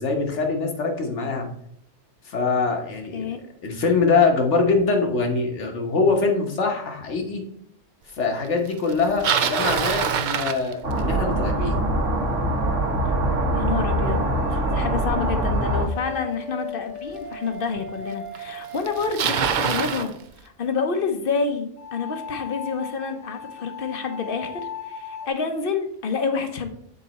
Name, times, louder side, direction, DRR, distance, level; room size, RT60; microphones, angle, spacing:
voice 1, 0.0-1.5 2.2-3.2 3.6-7.4 8.1-11.8, left 4 dB, 70° left, 3 dB, 1.4 m, -23 dB
Bicycle, 8.9-11.2 16.3-16.4 17.2-17.3 18.3-18.4 18.6-20.1, right 7 dB, 60° right, 0.5 m, -24 dB
sound 1, 10.8-15.9, right 1 dB, 75° right, 1.3 m, -23 dB
voice 2, 13.5-20.1 20.4-26.7, left 5 dB, 55° left, 7 dB, 0.8 m, -28 dB
sound 2, 14.0-19.9 21.8-25.3, left 4 dB, 85° left, 1.6 m, -38 dB
7.0 x 4.0 x 4.1 m, 0.68 s
omnidirectional pair, 1.3 m